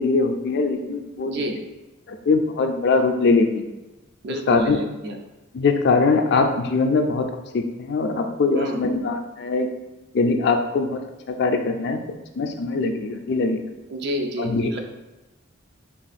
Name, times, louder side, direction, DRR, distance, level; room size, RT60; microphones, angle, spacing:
voice 1, 0.0-1.4 2.1-3.6 4.5-4.8 5.5-9.7 10.1-11.0 11.3-12.0 12.4-13.6 14.4-14.7, left 4 dB, 55° left, 6 dB, 0.4 m, -22 dB
voice 2, 1.2-1.6 4.2-5.2 8.5-9.0 13.9-14.8, equal, 55° right, 4 dB, 0.4 m, -29 dB
3.5 x 2.4 x 4.0 m, 1.1 s
head